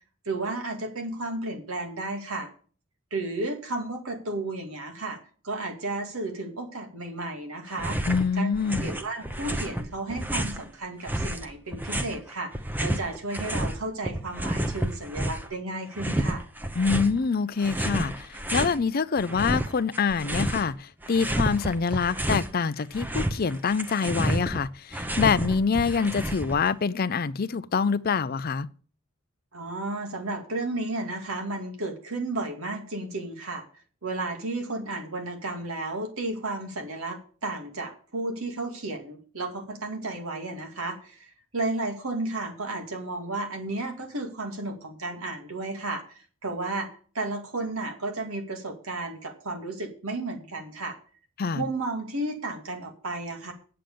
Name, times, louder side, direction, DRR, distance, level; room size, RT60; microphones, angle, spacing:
voice 1, 0.3-2.5 3.1-5.2 5.4-8.0 8.4-12.5 12.8-16.4 29.5-33.7 34.0-51.0 51.5-53.5, right 2 dB, 90° right, 2.3 m, -33 dB
sound 1, 7.7-8.3 8.5-10.6 11.1-13.8 14.0-15.5 15.9-17.1 17.6-18.8 19.2-20.7 21.0-22.5 22.8-26.7, right 1 dB, 10° right, 0.7 m, -30 dB
voice 2, 8.1-8.9 16.8-28.7 51.4-51.6, left 5 dB, 45° left, 0.5 m, -26 dB
9.1 x 7.7 x 6.9 m
head